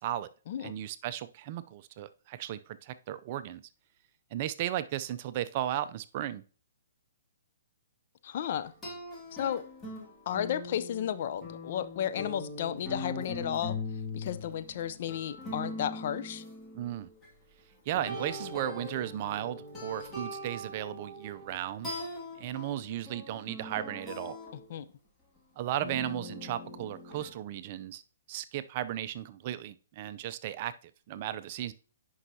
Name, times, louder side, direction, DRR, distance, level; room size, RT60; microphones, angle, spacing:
voice 1, 0.6-3.6 4.3-6.4 16.7-17.1 17.9-22.0 22.4-24.4 25.6-28.0 28.3-31.7, right 12 dB, 40° right, 13 dB, 0.5 m, -35 dB
voice 2, 8.2-8.7 9.4-9.6 10.3-13.8 14.1-16.4 24.7-24.8, left 10 dB, 50° left, 13 dB, 0.5 m, -33 dB
sound 1, 8.8-17.3 17.9-24.7 25.7-27.3, left 2 dB, 15° left, 2.2 m, -41 dB
9.7 x 5.5 x 2.8 m, 0.38 s
hypercardioid pair, 135°, 0 cm